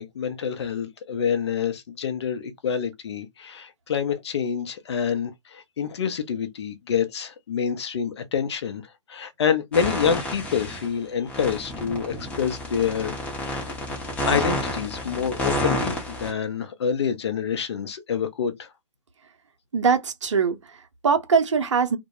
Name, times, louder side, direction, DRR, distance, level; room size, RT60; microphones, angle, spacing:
voice 1, 0.0-8.8 9.1-13.1 13.4-13.7 14.3-18.7, left 7 dB, 55° left, 0.6 m, -27 dB
sound 1, 9.7-10.9 11.3-16.3, left 1 dB, 10° left, 0.6 m, -29 dB
voice 2, 19.7-22.0, right 5 dB, 65° right, 0.6 m, -22 dB
2.1 x 2.0 x 2.9 m
figure-of-eight pair, 120°, 17 cm